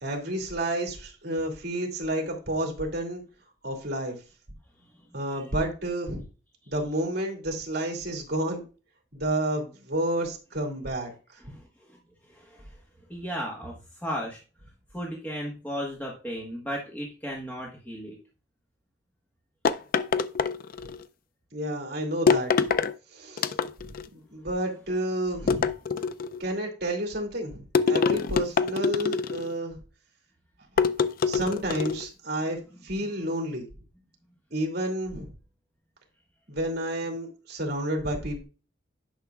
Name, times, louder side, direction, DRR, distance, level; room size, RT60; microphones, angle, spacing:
voice 1, 0.0-3.2 3.6-4.2 5.1-6.2 6.7-8.6 9.1-11.5 20.8-20.9 21.5-22.5 23.1-23.5 23.8-25.7 26.4-29.8 30.8-30.9 31.3-33.7 34.5-35.3 36.5-38.4, right 1 dB, 60° right, 1 dB, 2.3 m, -30 dB
voice 2, 12.3-12.6 13.1-13.8 14.0-14.4 14.9-18.2, equal, 10° left, -2 dB, 1.3 m, -35 dB
sound 1, 19.6-21.0 22.3-22.9 23.4-24.0 25.5-26.4 27.7-29.5 30.8-32.1, left 5 dB, 50° left, 0.4 m, -25 dB
10.0 x 5.8 x 2.4 m, 0.34 s
head